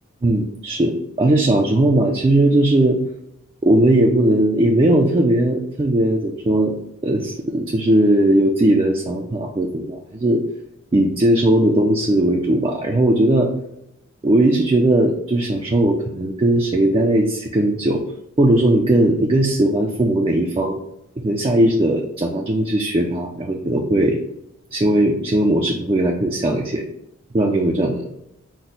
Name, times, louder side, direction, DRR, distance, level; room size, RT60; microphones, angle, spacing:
voice 1, 0.2-3.0 3.6-6.7 7.0-10.4 10.9-13.5 14.2-18.0 18.4-20.8 21.2-24.2 24.7-26.8 27.3-28.1, right 1 dB, 25° right, 1 dB, 0.4 m, -18 dB
6.0 x 2.1 x 3.9 m, 0.81 s
head